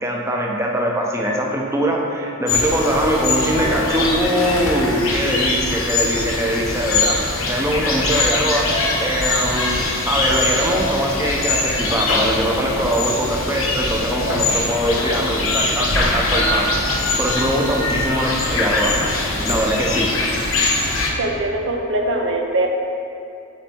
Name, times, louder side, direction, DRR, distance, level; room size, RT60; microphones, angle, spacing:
voice 1, 0.0-7.2 7.5-8.7 9.0-20.1, right 1 dB, 10° right, -1 dB, 0.7 m, -22 dB
sound 1, 2.5-21.1, left 2 dB, 60° left, 1.0 m, -22 dB
voice 2, 21.2-22.7, right 2 dB, 60° right, 2 dB, 0.7 m, -21 dB
7.9 x 4.1 x 4.4 m, 2.6 s
head